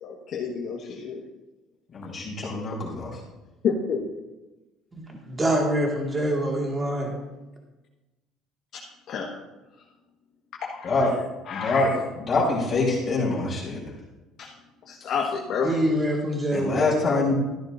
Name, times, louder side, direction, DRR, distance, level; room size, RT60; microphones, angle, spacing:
voice 1, 0.0-1.2 3.6-4.0 8.7-8.8 9.1-9.3 10.6-11.1 11.5-11.9 14.4-14.5 14.9-15.8, left 6 dB, 50° left, -2 dB, 1.4 m, -29 dB
voice 2, 1.9-3.2 10.8-11.1 11.5-13.8 15.0-15.1 16.5-17.4, left 3 dB, 30° left, -6 dB, 4.1 m, -25 dB
voice 3, 4.9-7.2 15.6-16.9, right 1 dB, 20° right, 0 dB, 2.0 m, -25 dB
14.0 x 10.5 x 2.6 m, 1.1 s
cardioid pair, 125°, 0 cm